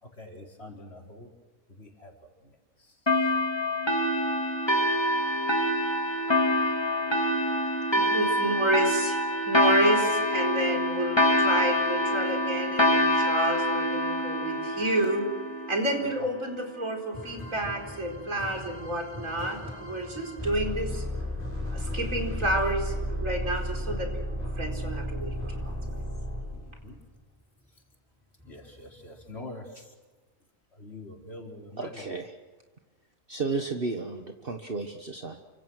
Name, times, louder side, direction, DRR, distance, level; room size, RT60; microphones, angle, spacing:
voice 1, 0.0-1.3 1.7-2.1 2.4-2.5 2.8-3.3 26.5-27.0 28.4-29.9 30.7-32.0, left 2 dB, 45° left, 0 dB, 4.7 m, -45 dB
sound 1, 3.1-16.1, left 1 dB, 20° left, 3.0 m, -26 dB
voice 2, 7.9-9.1 9.5-15.3 15.7-21.0 21.7-24.2 24.6-25.3 25.6-26.0, right 1 dB, 70° right, 2 dB, 5.0 m, -29 dB
sound 2, 17.1-26.9 28.4-28.6 29.1-29.3, equal, 10° right, 7.8 m, -34 dB
voice 3, 31.8-32.3 33.3-35.4, right 4 dB, 40° right, 4 dB, 1.7 m, -33 dB
29.5 x 25.5 x 6.5 m, 1.3 s
omnidirectional pair, 1.4 m